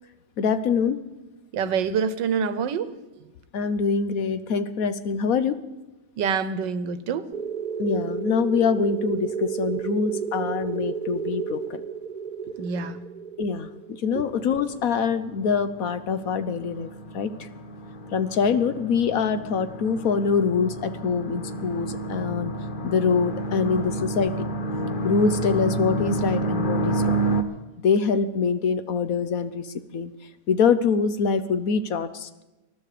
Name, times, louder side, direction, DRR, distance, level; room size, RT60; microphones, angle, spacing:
voice 1, 0.4-1.0 3.5-5.6 7.8-11.8 13.4-13.7 14.0-17.5 18.1-22.5 22.8-24.3 25.0-27.2 27.8-29.7 29.9-30.1 30.5-32.4, left 5 dB, 60° left, 1.1 m, -24 dB
voice 2, 1.5-2.9 6.2-7.3 12.6-13.0, right 6 dB, 90° right, 1.6 m, -26 dB
sound 1, 7.3-15.7, right 7 dB, 65° right, 0.4 m, -32 dB
sound 2, 14.3-27.4, right 2 dB, 35° left, 1.0 m, -30 dB
20.0 x 12.0 x 5.0 m
omnidirectional pair, 1.9 m